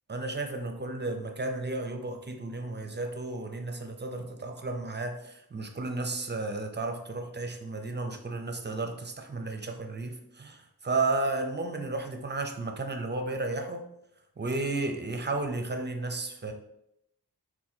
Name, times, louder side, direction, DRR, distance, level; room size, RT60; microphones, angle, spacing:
voice 1, 0.1-13.8 14.4-16.5, right 2 dB, 25° right, 5 dB, 0.4 m, -33 dB
4.2 x 2.2 x 2.7 m, 0.79 s
wide cardioid pair, 45°, 40 cm